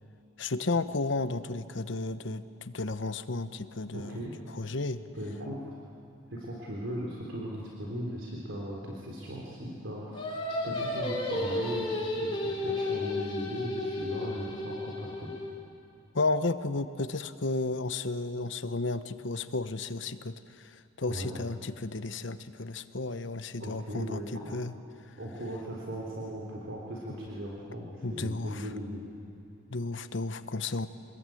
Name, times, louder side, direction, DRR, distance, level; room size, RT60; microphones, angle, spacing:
voice 1, 0.4-4.3 4.5-5.0 16.1-24.7 28.0-28.7 29.7-30.9, left 3 dB, 60° left, 11 dB, 0.9 m, -33 dB
voice 2, 3.9-4.4 5.1-5.6 6.3-15.3 21.1-21.4 23.6-24.6 25.2-29.0, equal, 70° right, -4 dB, 3.6 m, -38 dB
Singing, 10.1-15.5, left 2 dB, 25° left, 4.1 m, -33 dB
25.5 x 21.0 x 9.2 m, 2.6 s
head